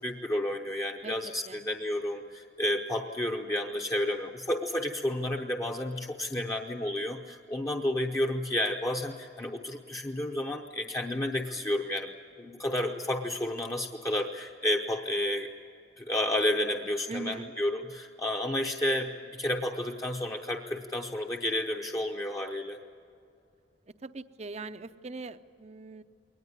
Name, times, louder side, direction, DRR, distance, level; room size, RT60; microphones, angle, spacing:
voice 1, 0.0-12.1 12.4-15.5 16.0-22.8, left 1 dB, 20° left, 2 dB, 0.8 m, -31 dB
voice 2, 17.1-17.5 24.0-26.0, right 3 dB, 35° right, 12 dB, 0.6 m, -41 dB
22.5 x 19.0 x 9.6 m, 2.5 s
head